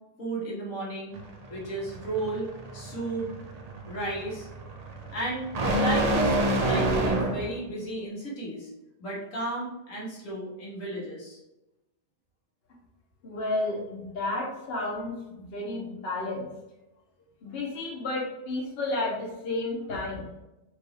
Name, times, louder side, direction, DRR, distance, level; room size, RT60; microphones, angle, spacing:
voice 1, 0.2-1.2 1.5-3.3 3.9-4.5 5.1-8.7 9.0-11.4, right 1 dB, 80° left, -5 dB, 1.7 m, -34 dB
sound 1, 1.1-7.6, right 1 dB, 50° right, 0.4 m, -28 dB
voice 2, 13.2-16.5 17.4-20.3, left 2 dB, 55° left, -3 dB, 1.1 m, -32 dB
4.5 x 2.5 x 3.1 m, 0.96 s
omnidirectional pair, 1.3 m